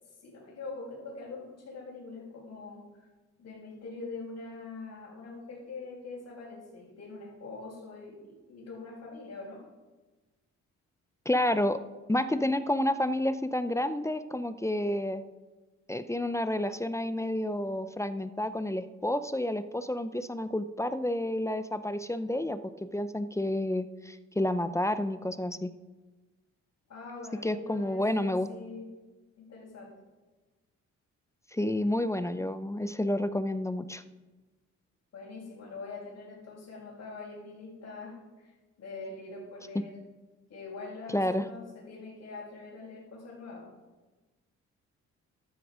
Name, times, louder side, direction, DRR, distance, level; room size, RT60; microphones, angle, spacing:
voice 1, 0.0-3.0 3.4-9.6 26.9-28.9 29.4-29.9 35.1-38.5 38.8-40.0 40.5-43.7, left 3 dB, 55° left, -8 dB, 5.8 m, -43 dB
voice 2, 11.3-11.8 12.1-15.2 15.9-25.7 27.4-28.5 31.5-34.0 41.1-41.4, left 1 dB, 10° left, 12 dB, 0.7 m, -30 dB
13.5 x 12.5 x 5.1 m, 1.2 s
cardioid pair, 90°, 30 cm